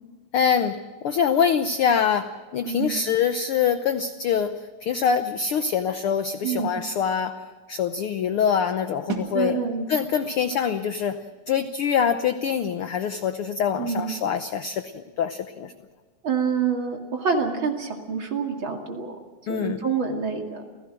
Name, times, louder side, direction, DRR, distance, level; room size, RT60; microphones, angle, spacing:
voice 1, 0.3-0.8 1.0-7.4 7.7-9.6 9.9-11.2 11.5-14.8 15.2-15.7 19.5-19.8, left 7 dB, 75° left, 9 dB, 1.3 m, -24 dB
voice 2, 6.4-6.7 9.3-9.9 13.8-14.1 16.2-19.2 19.5-20.6, right 6 dB, 45° right, 3 dB, 2.9 m, -27 dB
sound 1, 9.1-14.8, right 6 dB, 75° right, 3.9 m, -41 dB
29.5 x 16.5 x 6.3 m, 1.4 s
omnidirectional pair, 3.5 m